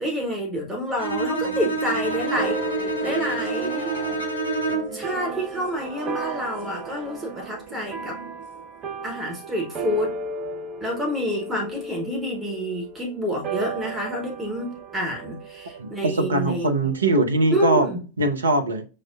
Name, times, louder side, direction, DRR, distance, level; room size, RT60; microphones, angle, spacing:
voice 1, 0.0-3.9 4.9-8.2 9.0-10.2 10.8-16.7 17.5-18.0, equal, 10° right, 0.9 m, -28 dB
Bowed string instrument, 1.0-5.1, right 3 dB, 90° right, 1.0 m, -27 dB
sound 1, 1.3-8.7, right 3 dB, 55° right, 1.0 m, -40 dB
sound 2, 2.4-17.1, right 2 dB, 30° right, 0.4 m, -35 dB
voice 2, 15.8-17.9 18.2-18.8, right 2 dB, 70° right, 0.6 m, -21 dB
6.2 x 2.1 x 2.3 m
figure-of-eight pair, 90°, 0 cm